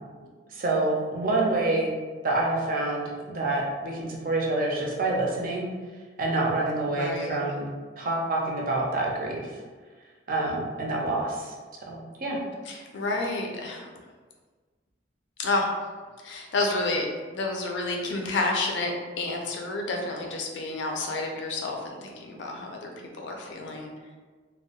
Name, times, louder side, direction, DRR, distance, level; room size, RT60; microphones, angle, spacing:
voice 1, 0.5-1.9 2.2-5.7 6.2-7.7 8.0-9.6 10.3-11.5 11.9-12.4, right 2 dB, 45° right, -2 dB, 0.5 m, -27 dB
voice 2, 6.9-7.4 12.7-13.9 15.4-15.7 16.2-17.1 17.3-22.9 23.2-23.9, left 2 dB, 70° left, 1 dB, 0.4 m, -30 dB
2.3 x 2.0 x 2.8 m, 1.5 s
head